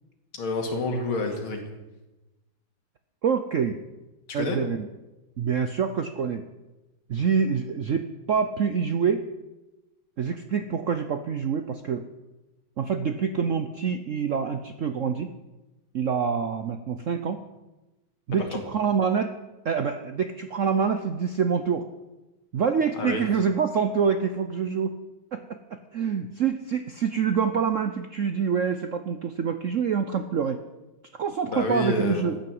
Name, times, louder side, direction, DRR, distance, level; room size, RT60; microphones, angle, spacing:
voice 1, 0.3-1.7 4.3-4.6 18.4-18.5 23.0-23.2 31.5-32.2, left 2 dB, 85° left, 3 dB, 3.1 m, -28 dB
voice 2, 3.2-3.8 4.3-4.9 5.4-6.4 7.1-9.3 10.2-12.1 12.8-15.3 15.9-17.4 18.3-19.4 19.6-21.9 22.5-25.0 25.3-30.6 31.1-32.4, right 6 dB, 75° right, 9 dB, 0.7 m, -26 dB
14.5 x 9.2 x 7.7 m, 1.1 s
omnidirectional pair, 2.2 m